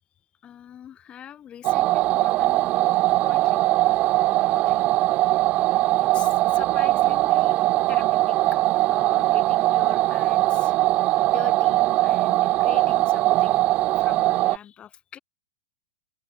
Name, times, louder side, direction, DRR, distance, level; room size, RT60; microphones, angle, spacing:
voice 1, 0.4-3.6 4.5-4.9 6.0-7.6 7.9-8.6 8.9-10.7 11.2-15.2, left 9 dB, 25° left, 1.4 m, -42 dB
sound 1, 1.6-14.6, right 17 dB, 30° right, 0.3 m, -21 dB
open air
hypercardioid pair, 135°, 5 cm